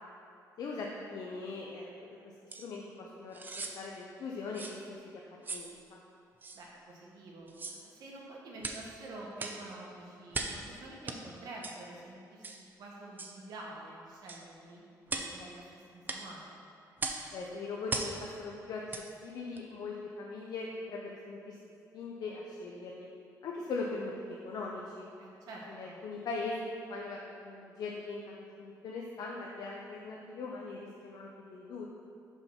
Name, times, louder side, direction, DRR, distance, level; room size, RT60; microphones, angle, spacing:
voice 1, 0.6-2.2 2.6-5.2 5.5-6.0 15.4-15.5 17.3-18.8 19.2-21.6 21.9-23.1 23.4-25.1 25.7-31.8, left 3 dB, 70° left, -2 dB, 0.6 m, -40 dB
sound 1, 2.5-2.7 3.3-3.8 4.5-4.8 5.4-5.7 6.4-6.6 7.5-7.8 8.6-8.9 9.4-9.6 10.3-10.6 11.1-11.2 11.6-11.8 12.4-12.6 13.2-13.4 14.3-14.5 15.1-15.3 16.1-16.2 17.0-17.3 17.9-18.2 18.9-19.1 19.6-19.7, right 3 dB, 25° right, 0.5 m, -38 dB
voice 2, 6.5-16.5 25.2-26.0, right 2 dB, 75° right, -3 dB, 1.4 m, -48 dB
5.6 x 4.4 x 5.6 m, 2.5 s
cardioid pair, 115°, 7 cm